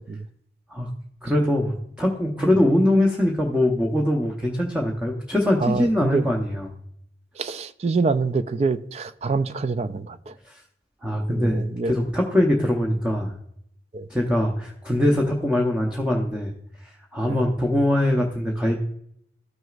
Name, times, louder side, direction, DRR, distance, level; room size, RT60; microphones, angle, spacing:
voice 1, 1.2-6.7 10.5-10.6 11.0-13.3 14.1-16.5 17.1-18.8, left 1 dB, 5° right, 0.7 m, -22 dB
voice 2, 5.6-6.3 7.4-10.3 11.3-11.9 13.9-14.1 17.2-17.4, right 4 dB, 35° right, 0.3 m, -26 dB
13.5 x 6.2 x 2.4 m
head